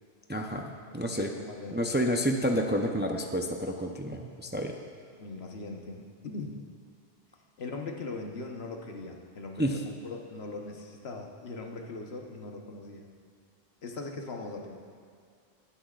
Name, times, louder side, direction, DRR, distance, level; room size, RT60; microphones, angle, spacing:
voice 1, 0.3-1.3 1.7-4.7 9.6-9.8, equal, 15° right, 2 dB, 0.5 m, -29 dB
voice 2, 1.1-2.0 5.2-6.6 7.6-13.1 13.8-14.8, left 3 dB, 80° left, 2 dB, 1.3 m, -40 dB
20.0 x 10.0 x 2.4 m, 2.2 s
omnidirectional pair, 1.1 m